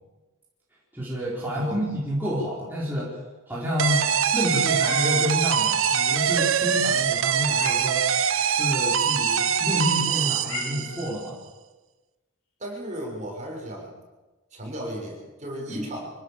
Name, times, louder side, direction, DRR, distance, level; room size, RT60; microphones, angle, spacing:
voice 1, 0.9-3.2 3.5-8.0 8.5-11.4 15.7-15.8, equal, 10° right, -7 dB, 4.8 m, -29 dB
sound 1, 3.8-11.1, right 7 dB, 75° right, 1.0 m, -23 dB
Meow, 4.4-5.4 7.1-8.0 10.1-11.2, left 3 dB, 65° left, 5.6 m, -37 dB
voice 2, 12.6-13.9 14.5-16.1, equal, 35° right, -1 dB, 6.8 m, -35 dB
25.5 x 17.0 x 7.5 m, 1.2 s
head